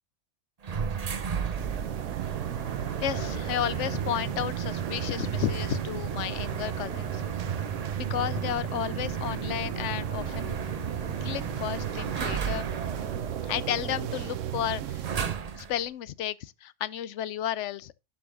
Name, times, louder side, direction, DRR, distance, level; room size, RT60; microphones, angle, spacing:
sound 1, 0.6-15.8, right 6 dB, 40° right, 0.7 m, -34 dB
sound 2, 1.6-15.4, right 12 dB, 80° right, 1.1 m, -36 dB
voice 1, 3.0-7.2 8.0-10.5 11.2-12.7 13.4-15.2 15.6-17.9, left 11 dB, 75° left, 0.9 m, -32 dB
11.5 x 5.5 x 3.7 m
omnidirectional pair, 1.3 m